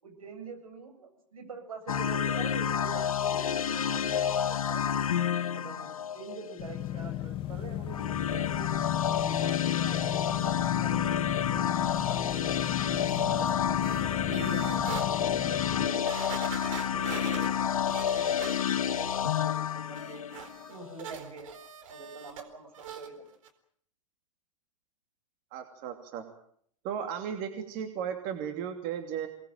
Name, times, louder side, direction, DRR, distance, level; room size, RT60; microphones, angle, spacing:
voice 1, 0.0-4.9 5.5-8.7 9.2-11.6 11.9-12.5 13.0-14.8 15.4-16.4 16.7-20.2 20.7-21.5 21.9-23.2, right 4 dB, 85° right, 5 dB, 7.4 m, -45 dB
sound 1, 1.9-6.7 7.9-20.9, left 8 dB, 80° left, 1.5 m, -29 dB
sound 2, 6.6-15.9, left 12 dB, 30° left, 1.6 m, -34 dB
sound 3, 13.8-15.1 15.6-15.7 16.1-19.0 19.4-22.4 22.7-23.1 23.4-23.5, right 7 dB, 65° right, 4.2 m, -43 dB
voice 2, 25.5-26.2 26.8-29.3, right 8 dB, 45° right, 6 dB, 2.8 m, -35 dB
24.0 x 20.0 x 9.0 m, 0.65 s
hypercardioid pair, 115°, 18 cm